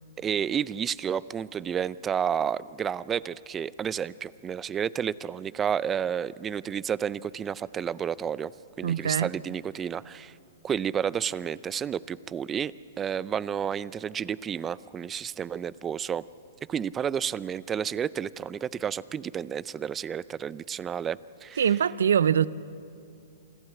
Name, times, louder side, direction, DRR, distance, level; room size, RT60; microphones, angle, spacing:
voice 1, 0.2-8.5 8.8-10.3 10.6-16.2 16.7-21.6, right 8 dB, 20° right, 0.4 m, -31 dB
voice 2, 8.8-9.3 21.6-22.5, right 8 dB, 80° right, 0.5 m, -23 dB
27.0 x 12.5 x 8.3 m
hypercardioid pair, 130°, 0 cm